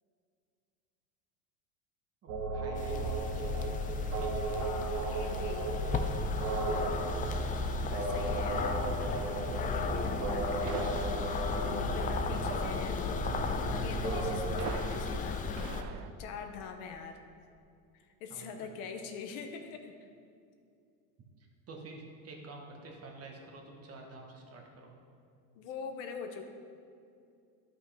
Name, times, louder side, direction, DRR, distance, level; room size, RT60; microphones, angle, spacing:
voice 1, 2.2-3.9 4.2-4.7 5.0-5.3 18.3-18.9 21.4-24.9, right 2 dB, 30° right, 1 dB, 1.4 m, -49 dB
sound 1, 2.3-14.7, right 2 dB, 85° right, 1.3 m, -35 dB
sound 2, 2.8-15.8, left 4 dB, 20° left, 0.3 m, -35 dB
voice 2, 4.6-5.8 7.9-8.8 9.1-11.1 11.7-13.1 13.7-17.2 17.9-20.1 25.5-26.5, left 6 dB, 70° left, 5 dB, 0.9 m, -43 dB
Shots in the woods, 7.4-16.1, right 9 dB, 50° right, 0.5 m, -47 dB
10.5 x 5.5 x 3.4 m, 2.5 s
supercardioid pair, 110°, 45 cm